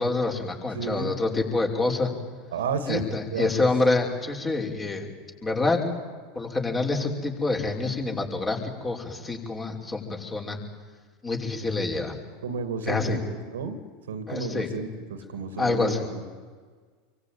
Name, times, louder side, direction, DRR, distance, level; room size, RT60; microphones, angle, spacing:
voice 1, 0.0-2.1 2.9-5.1 5.4-5.8 6.3-10.6 11.2-12.2 12.9-13.2 14.3-14.7 15.6-16.0, left 3 dB, 20° left, 1 dB, 5.7 m, -27 dB
voice 2, 0.7-1.1 2.5-3.7 12.4-13.8 14.1-16.3, right 4 dB, 75° right, 10 dB, 2.6 m, -32 dB
27.0 x 24.0 x 9.3 m, 1.5 s
hypercardioid pair, 85°, 0 cm